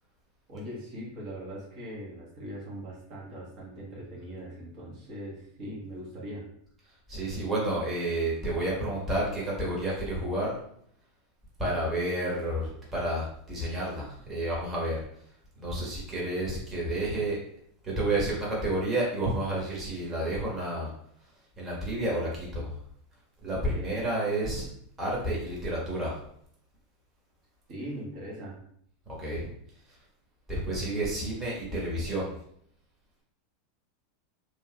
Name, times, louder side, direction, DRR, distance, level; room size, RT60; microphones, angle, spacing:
voice 1, 0.5-6.4 23.7-24.0 27.7-28.6, equal, 50° right, -4 dB, 1.2 m, -40 dB
voice 2, 7.1-10.6 11.6-15.0 15.6-17.4 17.8-20.9 21.6-22.7 23.4-24.6 25.0-26.2 29.1-29.5 29.9-30.0 30.5-32.3, right 1 dB, 25° right, -5 dB, 1.3 m, -30 dB
3.1 x 2.8 x 2.3 m, 0.67 s
hypercardioid pair, 105°, 0 cm